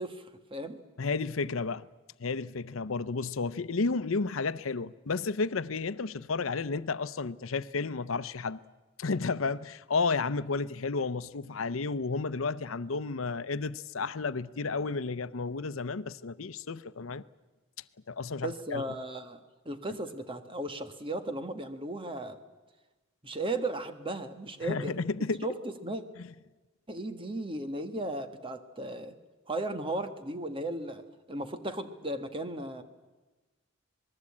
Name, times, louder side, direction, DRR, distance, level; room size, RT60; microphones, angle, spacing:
voice 1, 0.0-0.8 18.4-19.4 19.6-22.4 23.2-24.9 25.4-26.0 26.9-29.2 29.5-31.0 31.3-32.8, right 1 dB, 25° right, 1.6 m, -36 dB
voice 2, 1.0-1.9 2.2-8.6 9.0-17.2 18.1-18.8 24.6-25.5 26.2-26.3, left 4 dB, 80° left, 0.7 m, -32 dB
27.0 x 20.0 x 8.6 m
head